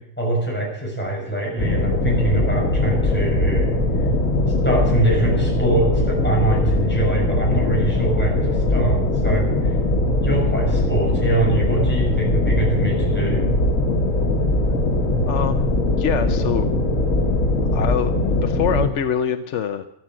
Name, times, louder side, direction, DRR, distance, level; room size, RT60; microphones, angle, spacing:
voice 1, 0.2-3.7 4.6-9.7 10.2-13.5, right 2 dB, 10° left, -3 dB, 6.6 m, -24 dB
sound 1, 1.6-18.9, left 2 dB, 90° left, 2.1 m, -20 dB
voice 2, 15.3-16.7 17.7-19.9, left 8 dB, 70° left, 8 dB, 1.1 m, -25 dB
13.5 x 13.0 x 7.6 m, 0.76 s
omnidirectional pair, 1.3 m